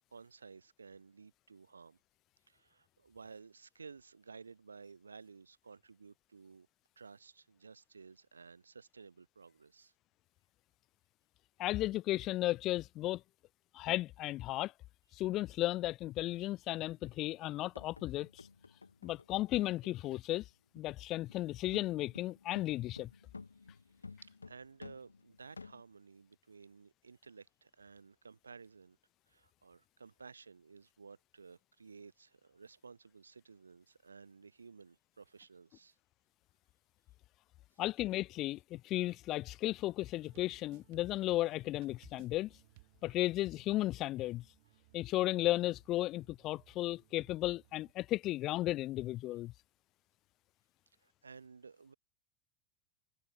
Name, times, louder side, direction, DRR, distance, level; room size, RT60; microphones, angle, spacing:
voice 1, 0.1-2.0 2.5-6.7 7.0-9.9 24.1-29.0 29.3-36.0 37.7-37.8 51.0-51.9, right 5 dB, 85° right, 0.7 m, -55 dB
voice 2, 11.6-13.2 13.7-14.7 15.1-18.5 19.0-20.4 20.7-23.1 37.8-42.5 43.0-44.4 44.9-49.5, left 16 dB, 45° left, 0.4 m, -34 dB
sound 1, 17.1-20.5 20.8-21.0 21.3-25.8, left 4 dB, 85° left, 1.1 m, -53 dB
sound 2, 40.1-47.9, right 24 dB, 60° right, 2.7 m, -65 dB
figure-of-eight pair, 75°, 0 cm